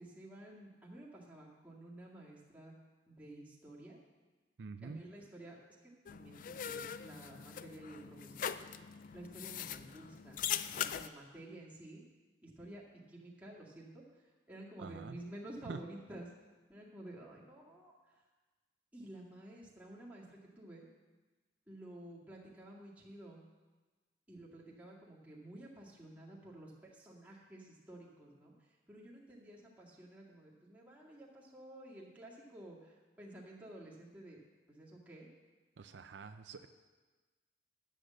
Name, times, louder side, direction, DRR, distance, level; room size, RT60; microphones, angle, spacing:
voice 1, 0.0-2.7 3.1-4.0 4.8-5.6 5.8-8.5 9.1-12.0 12.4-12.8 13.1-14.0 14.5-16.3 16.7-18.2 18.9-20.8 21.7-23.4 24.3-28.5 28.9-34.4 34.7-35.3, right 1 dB, 10° right, -6 dB, 2.1 m, -52 dB
voice 2, 4.6-5.0 14.8-15.2 15.7-15.8 35.8-36.7, right 4 dB, 75° right, 9 dB, 0.5 m, -46 dB
sound 1, 6.1-11.1, left 9 dB, 45° left, 0.3 m, -41 dB
10.0 x 6.5 x 7.5 m, 1.3 s
head